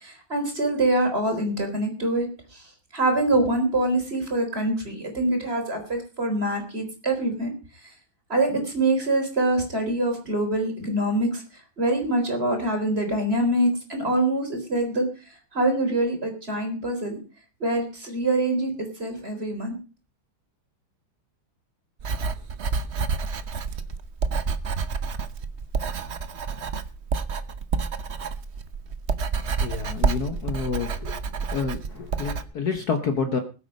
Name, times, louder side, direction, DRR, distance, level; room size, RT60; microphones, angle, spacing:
voice 1, 0.0-2.6 2.9-7.5 8.3-11.4 11.8-15.1 15.5-17.2 17.6-19.8, right 1 dB, 30° right, 3 dB, 4.3 m, -25 dB
Writing, 22.0-32.4, right 5 dB, 50° right, 0.9 m, -29 dB
voice 2, 29.6-31.2 31.5-33.4, left 5 dB, 55° left, 8 dB, 1.5 m, -28 dB
20.5 x 8.5 x 5.3 m, 0.36 s
omnidirectional pair, 2.2 m